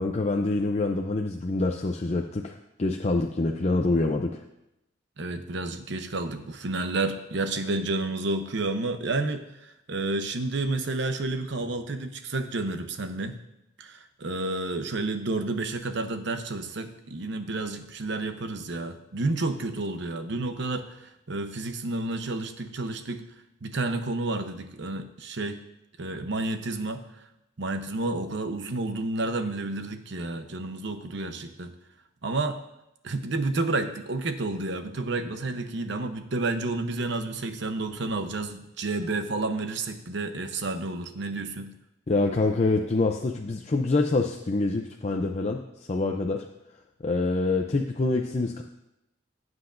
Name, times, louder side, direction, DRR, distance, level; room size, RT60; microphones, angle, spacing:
voice 1, 0.0-4.4 42.1-46.5 47.0-48.6, left 2 dB, 35° left, 3 dB, 0.5 m, -26 dB
voice 2, 5.2-13.4 13.8-23.2 23.6-25.6 26.0-27.0 27.6-31.7 32.2-32.6 33.0-41.7, right 2 dB, 65° right, 8 dB, 0.9 m, -30 dB
17.5 x 7.9 x 2.6 m, 0.87 s
head